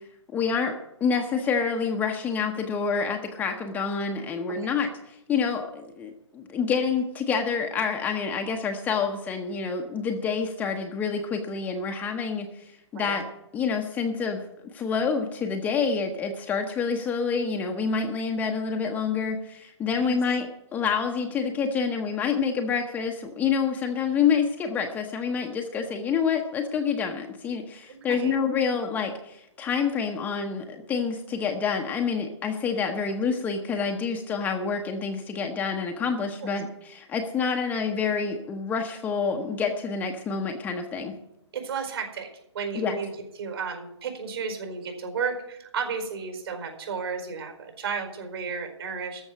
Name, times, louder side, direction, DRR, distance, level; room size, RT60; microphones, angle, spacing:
voice 1, 0.3-13.3 13.5-14.4 14.7-41.1 42.7-43.0, left 5 dB, 10° left, 3 dB, 0.8 m, -27 dB
voice 2, 28.1-28.4 36.4-36.5 41.5-42.3 42.5-43.1 43.4-49.2, right 5 dB, 55° right, 4 dB, 4.8 m, -33 dB
14.0 x 6.4 x 9.8 m, 0.84 s
figure-of-eight pair, 130°, 15 cm